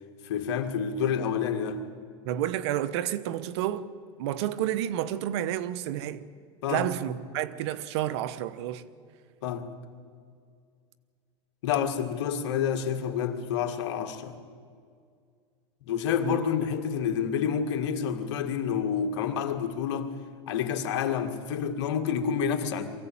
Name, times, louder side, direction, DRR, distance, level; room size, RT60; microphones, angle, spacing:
voice 1, 0.2-1.8 6.6-6.9 9.4-9.7 11.6-14.4 15.9-20.1 20.5-22.9, left 7 dB, 75° left, 2.0 m, -28 dB
voice 2, 2.2-3.9 4.2-6.3 6.7-8.8 16.2-16.4, right 12 dB, 70° right, 1.1 m, -30 dB
23.5 x 16.0 x 8.7 m
supercardioid pair, 115°, 15 cm